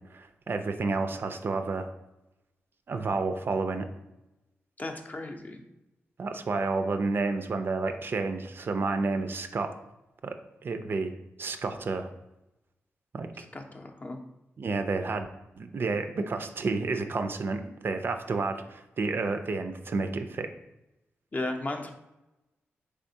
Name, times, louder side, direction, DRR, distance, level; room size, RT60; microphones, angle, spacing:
voice 1, 0.1-1.9 2.9-3.9 6.2-9.7 10.2-11.1 11.4-12.1 13.1-13.4 14.6-15.3 15.6-20.5, right 3 dB, 50° right, 8 dB, 0.3 m, -30 dB
voice 2, 4.8-5.6 13.5-14.2 21.3-21.9, left 2 dB, 35° left, 5 dB, 0.5 m, -35 dB
3.4 x 3.4 x 2.7 m, 0.94 s
cardioid pair, 60°, 5 cm